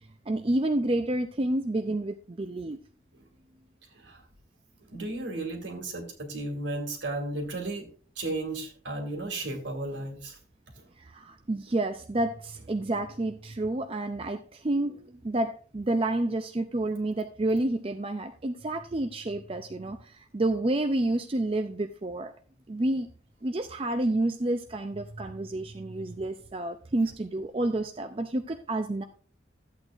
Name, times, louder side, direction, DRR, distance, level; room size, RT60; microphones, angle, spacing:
voice 1, 0.3-2.8 11.0-22.3 22.7-23.1 23.4-29.0, right 1 dB, 30° right, 7 dB, 0.5 m, -29 dB
voice 2, 4.9-7.9 8.2-10.4, right 2 dB, 75° right, 3 dB, 2.4 m, -34 dB
13.0 x 8.5 x 2.5 m, 0.41 s
head